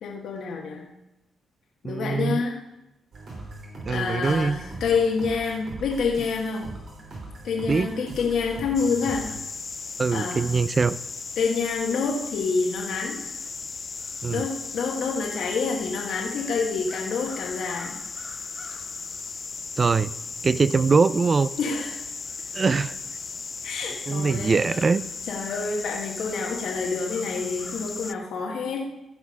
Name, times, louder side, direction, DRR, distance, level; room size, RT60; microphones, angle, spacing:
voice 1, 0.0-0.8 1.8-2.6 3.9-6.7 7.4-9.3 10.1-10.4 11.4-13.2 14.3-17.9 21.6-22.0 23.6-24.6 25.3-28.8, left 5 dB, 75° left, -1 dB, 1.3 m, -27 dB
voice 2, 1.8-2.4 3.9-4.6 7.7-7.9 10.0-11.0 14.2-14.5 19.8-20.1 20.4-21.5 22.5-22.9 24.1-25.0, right 4 dB, 40° right, 18 dB, 0.4 m, -22 dB
sound 1, 3.1-9.4, right 2 dB, 60° right, 3.4 m, -40 dB
sound 2, 8.7-28.1, left 4 dB, 40° left, 0.3 m, -36 dB
15.0 x 5.1 x 5.3 m, 0.92 s
supercardioid pair, 65°, 0 cm